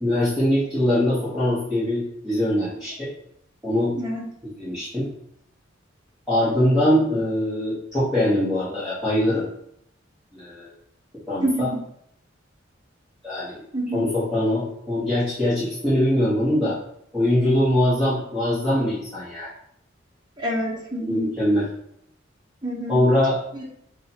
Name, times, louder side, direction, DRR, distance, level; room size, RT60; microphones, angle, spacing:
voice 1, 0.0-3.1 3.6-3.9 4.6-5.1 6.3-9.5 10.3-10.7 11.3-11.7 13.2-13.6 13.9-16.8 17.1-19.5 21.0-21.7 22.9-23.4, left 1 dB, ahead, -14 dB, 1.4 m, -22 dB
voice 2, 3.9-4.3 11.4-11.6 13.7-14.1 20.4-21.3 22.6-23.0 23.5-23.7, equal, 20° right, -3 dB, 1.0 m, -27 dB
6.1 x 2.4 x 2.9 m, 0.72 s
head